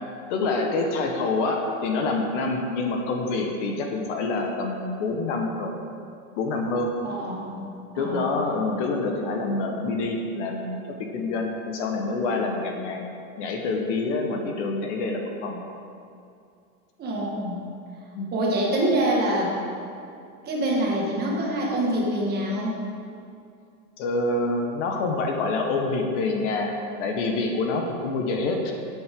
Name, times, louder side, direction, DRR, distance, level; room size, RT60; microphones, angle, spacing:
voice 1, 0.3-5.7 6.4-6.9 7.9-13.0 13.4-15.6 18.1-18.3 24.0-28.7, left 3 dB, 55° left, 2 dB, 1.4 m, -26 dB
voice 2, 7.0-7.7 7.9-8.3 17.0-17.6 18.3-19.5 20.4-22.8, right 1 dB, 20° right, -3 dB, 1.7 m, -25 dB
13.5 x 8.0 x 3.8 m, 2.5 s
supercardioid pair, 155°, 44 cm